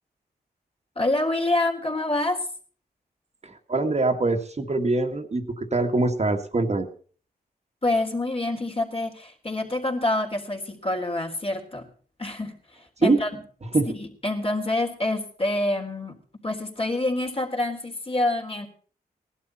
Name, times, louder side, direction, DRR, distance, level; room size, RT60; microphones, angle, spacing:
voice 1, 1.0-2.5 7.8-11.8 12.2-13.4 13.9-16.1 16.4-18.7, left 2 dB, 35° left, 2 dB, 3.6 m, -27 dB
voice 2, 3.4-6.9 13.0-13.2 13.7-13.9, right 3 dB, 40° right, 4 dB, 1.8 m, -23 dB
17.5 x 11.5 x 4.3 m, 0.43 s
cardioid pair, 60°, 17 cm